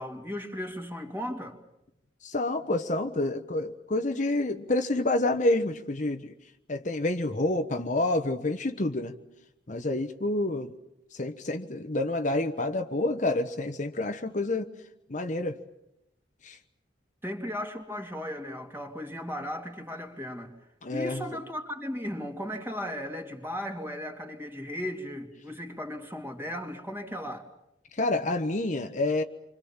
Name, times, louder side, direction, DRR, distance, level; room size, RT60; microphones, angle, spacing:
voice 1, 0.0-1.6 17.2-20.5 20.9-27.5, equal, 10° right, 3.0 m, -36 dB
voice 2, 2.2-6.3 6.7-9.2 9.7-10.7 11.2-14.7 15.1-15.6 16.4-16.6 20.8-21.2 27.9-29.2, left 2 dB, 40° left, 1.1 m, -28 dB
28.5 x 25.5 x 7.3 m
head